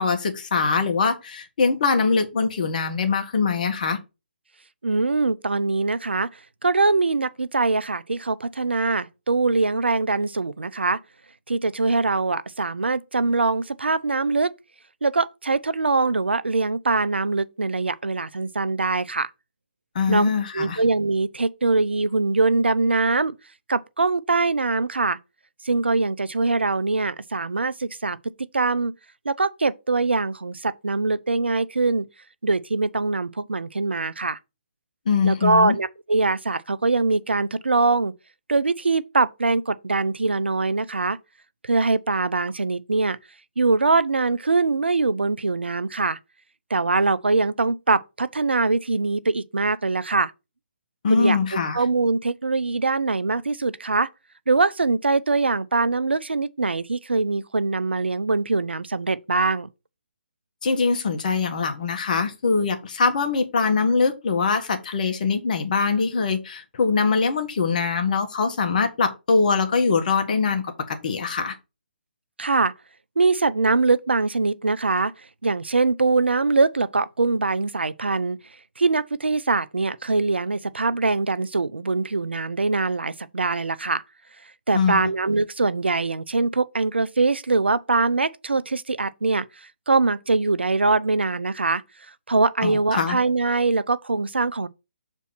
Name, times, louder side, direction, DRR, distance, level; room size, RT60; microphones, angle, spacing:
voice 1, 0.0-4.0 19.9-20.8 35.0-35.7 51.0-51.8 60.6-71.5 84.7-85.1 92.6-93.2, left 5 dB, 50° left, 1.7 m, -23 dB
voice 2, 4.8-6.3 6.6-11.0 11.5-14.5 15.0-19.3 20.1-23.3 23.7-25.2 25.6-28.9 29.2-32.1 32.4-34.4 35.2-38.1 38.5-41.2 41.6-43.2 43.6-46.2 46.7-50.3 51.1-51.4 51.7-54.1 54.5-59.7 72.4-72.7 73.2-75.1 75.4-78.4 78.8-84.0 84.7-89.5 89.9-91.8 92.3-94.7, right 3 dB, 85° right, 0.6 m, -23 dB
6.9 x 4.5 x 4.3 m
figure-of-eight pair, 145°, 6 cm